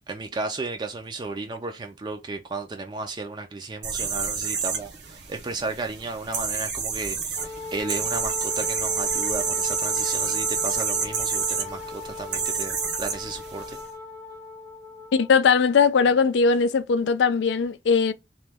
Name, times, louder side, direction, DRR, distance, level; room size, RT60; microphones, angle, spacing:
voice 1, 0.1-13.8, right 3 dB, 25° right, 0.4 m, -34 dB
sound 1, 3.8-13.8, right 6 dB, 85° right, 0.9 m, -29 dB
Wind instrument woodwind instrument, 7.3-15.3, left 3 dB, 25° left, 0.8 m, -37 dB
voice 2, 15.1-18.1, left 5 dB, 85° left, 0.4 m, -20 dB
3.0 x 2.3 x 3.3 m
head